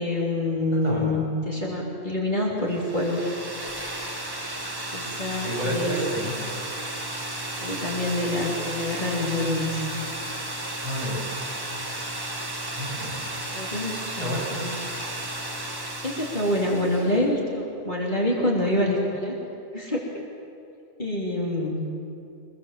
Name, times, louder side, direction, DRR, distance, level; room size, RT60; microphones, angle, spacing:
voice 1, 0.0-3.2 4.9-6.0 7.6-9.8 13.5-14.7 16.0-19.4 19.7-20.0 21.0-21.8, left 1 dB, 40° left, -3 dB, 3.4 m, -26 dB
sound 1, 2.7-17.2, right 1 dB, 20° right, 1.6 m, -33 dB
voice 2, 5.4-6.4 10.8-11.2 12.8-13.1 14.2-14.5, equal, 35° right, -6 dB, 8.2 m, -30 dB
25.5 x 21.0 x 7.4 m, 2.6 s
omnidirectional pair, 1.3 m